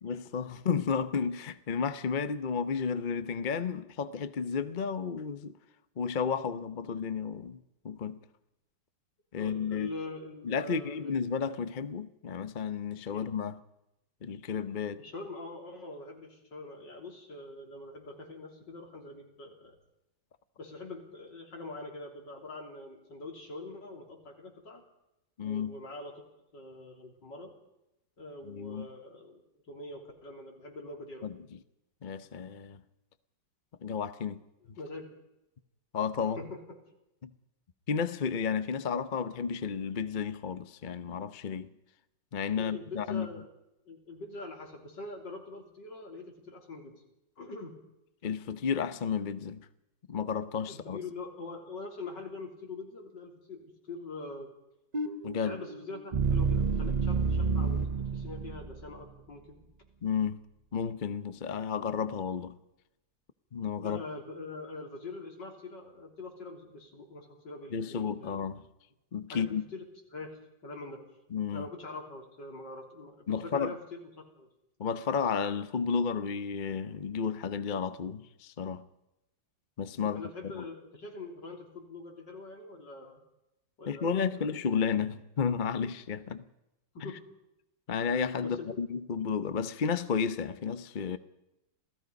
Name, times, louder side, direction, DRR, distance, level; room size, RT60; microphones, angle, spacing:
voice 1, 0.0-5.5 6.0-7.6 7.8-8.2 9.3-9.9 10.4-13.6 14.2-15.0 25.4-25.7 28.4-28.9 31.2-31.3 32.0-32.8 33.8-34.4 35.9-36.4 37.2-37.3 37.9-41.7 42.3-43.3 48.2-49.7 50.1-51.0 55.2-55.6 60.0-60.4 60.7-62.6 63.5-64.0 67.7-68.6 69.1-69.6 71.3-71.7 73.3-73.7 74.8-78.9 79.8-80.6 83.9-86.4 87.0-87.1 87.9-91.2, left 6 dB, 40° left, 0.7 m, -32 dB
voice 2, 9.4-11.2 13.1-13.2 15.0-19.8 20.6-24.8 25.4-26.2 26.5-27.5 28.2-31.3 34.6-35.1 36.4-36.6 42.6-43.4 43.9-47.0 47.4-47.7 50.7-54.5 55.4-59.7 63.8-68.4 69.3-69.9 70.1-70.4 70.6-71.0 71.5-74.5 80.0-83.2 83.8-84.5 86.9-87.2 88.4-88.8, left 3 dB, 75° left, 4.2 m, -44 dB
sound 1, 54.9-59.0, right 4 dB, 35° right, 0.7 m, -30 dB
27.5 x 17.5 x 5.3 m
omnidirectional pair, 1.9 m